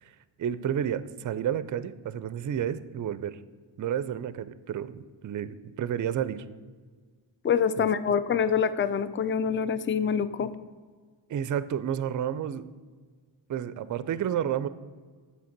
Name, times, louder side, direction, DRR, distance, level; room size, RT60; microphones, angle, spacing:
voice 1, 0.4-3.4 3.8-6.4 7.8-7.9 11.3-12.6 13.5-14.7, right 9 dB, 40° right, 15 dB, 0.4 m, -31 dB
voice 2, 7.4-10.5, left 7 dB, 25° left, 14 dB, 0.4 m, -25 dB
7.7 x 3.4 x 5.8 m, 1.5 s
cardioid pair, 55°, 48 cm